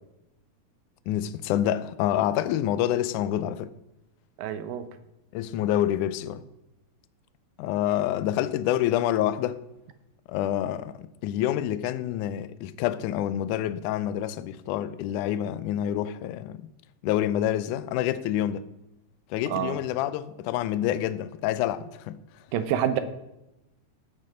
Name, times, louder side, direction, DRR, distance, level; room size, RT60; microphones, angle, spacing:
voice 1, 1.1-3.7 5.3-6.4 7.6-9.6 10.3-16.7 17.0-18.7 19.3-22.2, left 12 dB, 80° left, 1.9 m, -27 dB
voice 2, 4.4-4.9 19.5-19.8 22.5-23.0, right 10 dB, 85° right, 2.6 m, -27 dB
17.5 x 6.6 x 5.1 m
omnidirectional pair, 3.9 m